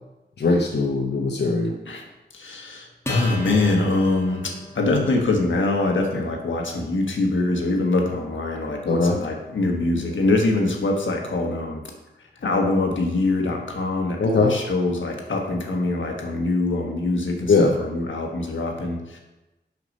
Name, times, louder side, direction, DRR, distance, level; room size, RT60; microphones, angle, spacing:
voice 1, 0.4-1.7 8.9-9.2 14.2-14.6 17.5-17.7, left 3 dB, 65° left, 1 dB, 0.7 m, -20 dB
voice 2, 2.3-11.8 12.4-19.2, left 2 dB, 80° left, 1 dB, 1.3 m, -24 dB
Acoustic guitar, 3.0-9.9, left 2 dB, 15° left, 1.1 m, -40 dB
6.1 x 5.8 x 5.3 m, 1.0 s
wide cardioid pair, 115°, 19 cm